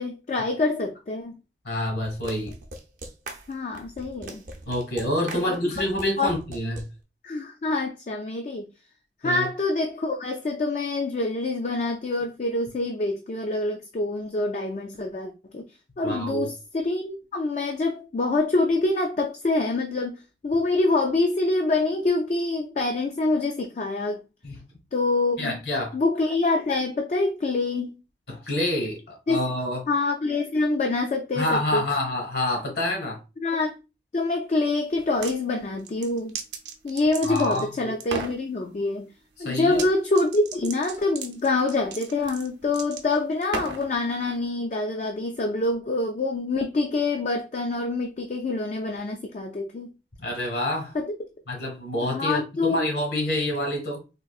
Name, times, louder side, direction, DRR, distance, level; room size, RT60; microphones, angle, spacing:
voice 1, 0.0-1.4 3.5-4.4 5.3-5.6 6.2-6.4 7.2-8.7 9.2-15.6 16.0-24.2 24.9-25.6 25.9-28.0 29.3-29.4 29.9-31.8 33.4-33.7 34.1-36.4 36.8-39.1 39.4-49.9 50.9-51.1 52.0-52.9, left 2 dB, 40° left, 0.3 m, -26 dB
voice 2, 1.6-2.5 4.6-6.9 9.2-9.4 16.0-16.5 24.4-24.6 25.4-26.0 28.3-29.8 31.4-33.2 37.2-38.0 39.4-39.8 50.2-50.9 51.5-54.0, left 1 dB, 65° left, 1.2 m, -27 dB
sound 1, 2.1-6.8, right 2 dB, 45° right, 0.5 m, -40 dB
sound 2, 35.0-35.4 35.8-37.7 38.0-38.4 39.7-39.9 40.1-43.9, right 4 dB, 90° right, 0.6 m, -35 dB
3.7 x 2.5 x 2.3 m
head